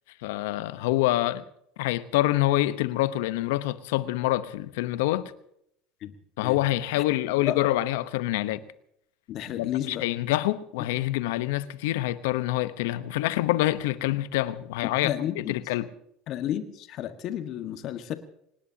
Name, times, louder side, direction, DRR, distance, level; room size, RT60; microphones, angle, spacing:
voice 1, 0.2-1.4 1.8-5.3 6.4-8.6 9.6-15.9, left 16 dB, 75° left, 1.0 m, -26 dB
voice 2, 9.3-10.1 15.0-15.5 16.3-18.1, left 11 dB, 55° left, 1.6 m, -31 dB
25.0 x 19.5 x 2.9 m
hypercardioid pair, 80°, 0 cm